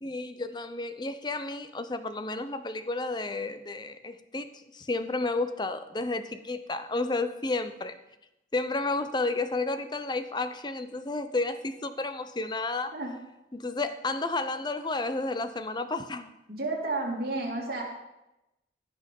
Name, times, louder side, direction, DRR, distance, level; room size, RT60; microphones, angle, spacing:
voice 1, 0.0-4.5 4.7-7.9 8.5-12.9 13.5-16.3, left 2 dB, 25° left, 11 dB, 0.6 m, -31 dB
voice 2, 16.5-17.8, right 2 dB, 55° right, -2 dB, 2.8 m, -31 dB
15.5 x 6.1 x 5.4 m, 0.92 s
head